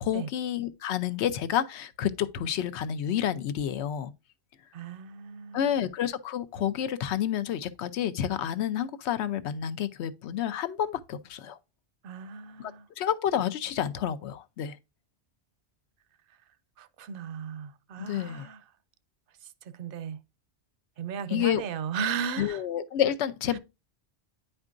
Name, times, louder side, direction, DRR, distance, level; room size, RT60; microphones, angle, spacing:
voice 1, 0.0-4.1 5.5-11.6 12.6-12.7 13.0-14.8 18.0-18.5 21.3-21.6 22.4-23.6, left 10 dB, 90° left, 0.9 m, -29 dB
voice 2, 4.7-5.9 12.0-12.9 16.8-18.6 19.6-20.2 21.0-22.6 23.5-23.6, right 7 dB, 65° right, 0.7 m, -36 dB
9.7 x 4.4 x 2.5 m
omnidirectional pair, 1.1 m